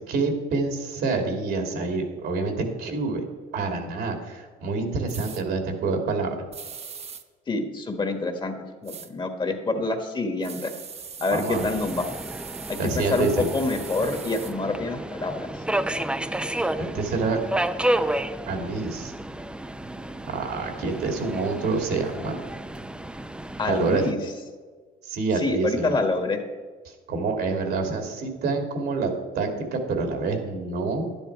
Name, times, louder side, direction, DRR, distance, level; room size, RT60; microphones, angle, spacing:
voice 1, 0.0-3.2 3.5-6.5 11.3-11.7 12.8-13.5 16.8-17.4 18.5-19.1 20.3-22.4 23.7-24.0 25.0-26.0 26.9-31.1, right 4 dB, 70° right, 4 dB, 2.4 m, -27 dB
sound 1, 5.1-5.4 6.5-7.2 8.8-9.1 10.4-14.5, right 6 dB, 35° right, 0.9 m, -40 dB
voice 2, 7.5-8.6 8.8-10.7 11.2-12.0 12.7-15.4 23.6-24.2 25.4-26.4, left 3 dB, 25° left, 6 dB, 1.5 m, -26 dB
Subway metro underground, 11.5-24.1, right 1 dB, 5° right, 0.5 m, -31 dB
11.0 x 10.0 x 4.6 m, 1.4 s
cardioid pair, 110°, 17 cm